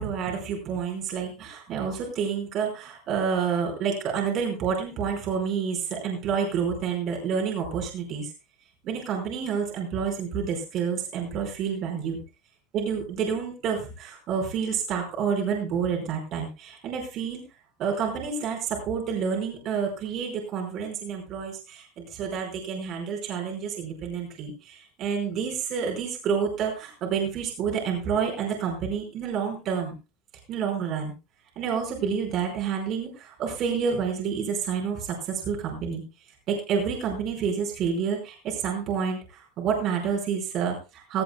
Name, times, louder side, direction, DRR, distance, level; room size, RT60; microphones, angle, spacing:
voice 1, 0.0-8.3 8.8-12.2 12.7-17.4 17.8-30.0 30.5-31.1 31.5-36.0 36.5-41.2, right 6 dB, 40° right, 1 dB, 5.0 m, -29 dB
16.5 x 15.0 x 2.3 m, 0.29 s
supercardioid pair, 145°, 0 cm